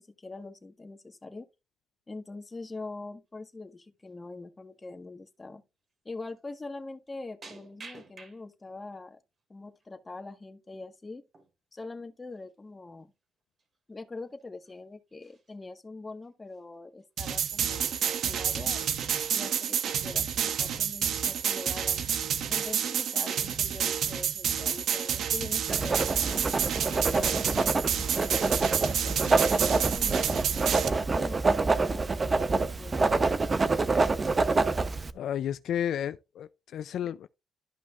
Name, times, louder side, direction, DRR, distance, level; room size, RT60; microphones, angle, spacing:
voice 1, 0.0-1.5 2.1-5.6 6.0-9.2 9.5-11.2 11.7-13.1 13.9-18.8 19.3-22.0 22.5-30.6 31.1-32.9, left 3 dB, 20° left, 1.6 m, -43 dB
sound 1, 3.3-3.5 3.9-4.2 4.7-4.8 5.8-5.9 6.3-6.4 7.4-8.8 9.2-9.9 11.3-11.5 11.8-11.9 12.3-12.5 13.2-13.3 13.6-13.8 14.3-14.8 15.1-15.7 16.2-16.7 17.0-17.1 17.4-18.1 18.5-18.9, right 4 dB, 45° right, 2.5 m, -53 dB
sound 2, 17.2-30.9, right 8 dB, 70° right, 1.0 m, -29 dB
Writing, 25.7-35.1, right 3 dB, 30° right, 0.8 m, -26 dB
voice 2, 35.1-37.3, left 10 dB, 70° left, 0.4 m, -32 dB
13.0 x 5.4 x 2.5 m
cardioid pair, 90°, 0 cm